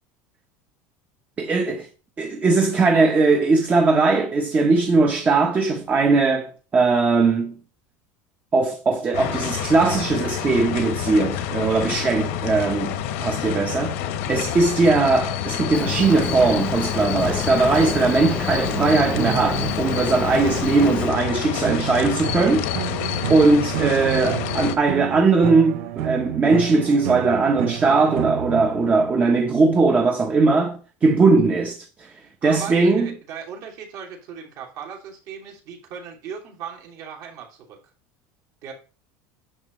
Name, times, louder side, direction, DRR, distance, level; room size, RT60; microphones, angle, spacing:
voice 1, 1.4-1.9 2.2-7.5 8.5-14.0 14.3-22.7 23.3-33.1, right 3 dB, 20° right, 1.0 m, -19 dB
sound 1, 9.1-24.8, left 10 dB, 75° left, 1.1 m, -28 dB
Boat Water vehicle, 15.7-21.1, left 4 dB, 15° left, 0.4 m, -30 dB
sound 2, 18.6-20.3 21.6-29.4, right 13 dB, 85° right, 0.7 m, -31 dB
voice 2, 32.4-37.8 38.6-38.7, right 7 dB, 55° right, 2.9 m, -37 dB
9.8 x 6.6 x 3.2 m
cardioid pair, 160°, 7 cm